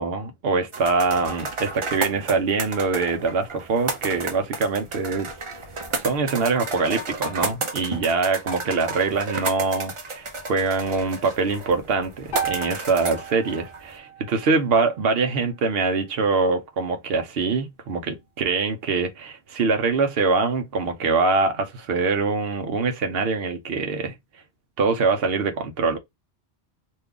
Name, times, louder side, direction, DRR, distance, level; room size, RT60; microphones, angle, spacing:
voice 1, 0.0-5.3 6.0-24.1 24.8-26.0, right 4 dB, 60° right, 0.8 m, -24 dB
sound 1, 0.7-14.0, right 3 dB, 45° right, 0.4 m, -32 dB
sound 2, 12.3-16.5, right 5 dB, 50° left, 0.8 m, -36 dB
2.7 x 2.3 x 3.6 m
omnidirectional pair, 1.2 m